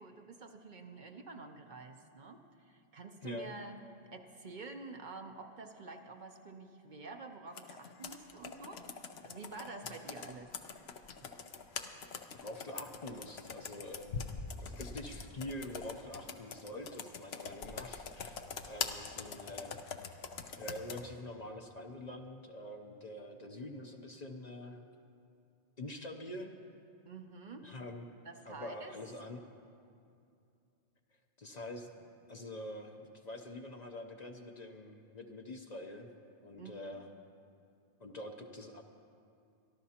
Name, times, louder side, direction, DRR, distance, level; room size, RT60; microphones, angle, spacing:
voice 1, 0.0-3.8 4.1-8.8 9.2-10.5 11.2-11.3 27.0-27.7 28.2-28.9 36.6-36.7, right 3 dB, 50° right, 5 dB, 0.8 m, -48 dB
voice 2, 3.2-3.5 12.4-14.2 14.6-18.4 18.6-19.8 20.6-24.8 25.8-26.5 27.6-28.1 28.5-29.4 31.4-36.1 36.4-37.1 38.0-38.8, left 1 dB, 45° left, 4 dB, 0.7 m, -45 dB
Computer keyboard, 7.5-21.0, left 6 dB, 70° left, 1.0 m, -44 dB
26.0 x 12.0 x 2.9 m, 2.5 s
omnidirectional pair, 1.1 m